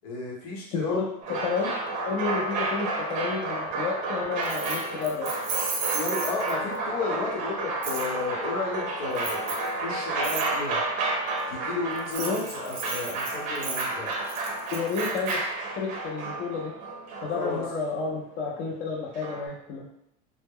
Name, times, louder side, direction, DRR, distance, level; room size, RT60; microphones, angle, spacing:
voice 1, 0.0-1.4 5.9-10.8 11.5-14.1 17.3-17.6, left 3 dB, 90° left, -3 dB, 0.9 m, -33 dB
voice 2, 0.7-1.0 1.3-1.7 2.1-5.3 12.2-12.4 14.7-15.4 15.8-16.7 17.2-19.9, left 5 dB, 45° left, -3 dB, 0.5 m, -30 dB
sound 1, 1.2-17.8 19.1-19.5, right 2 dB, 40° right, 0.5 m, -31 dB
Keys jangling, 4.4-6.8 7.8-8.1 9.1-9.7 10.2-10.5 12.0-15.3, right 5 dB, 85° right, 0.6 m, -34 dB
2.0 x 2.0 x 3.6 m, 0.78 s
cardioid pair, 160°, 19 cm